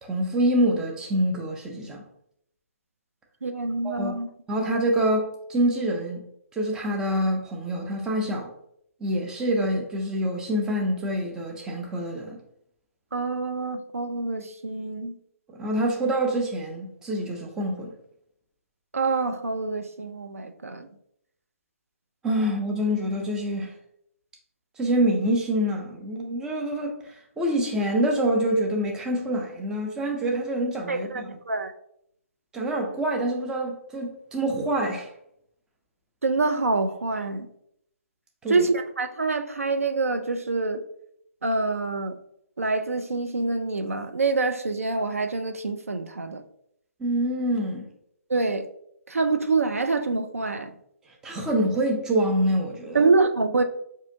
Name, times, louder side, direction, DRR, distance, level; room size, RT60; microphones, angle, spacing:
voice 1, 0.0-2.0 3.8-4.2 4.5-6.2 6.5-8.5 9.0-12.4 15.5-17.9 22.2-23.7 24.8-31.3 32.5-35.1 38.4-38.7 47.0-47.9 51.2-53.0, right 1 dB, 10° right, 0.5 m, -26 dB
voice 2, 3.4-4.3 13.1-15.2 18.9-20.9 30.9-31.7 36.2-37.5 38.5-40.8 41.4-42.2 42.6-46.4 48.3-48.7 49.1-50.7 52.9-53.6, right 3 dB, 75° right, 0.4 m, -26 dB
4.9 x 2.7 x 2.6 m
figure-of-eight pair, 130°, 8 cm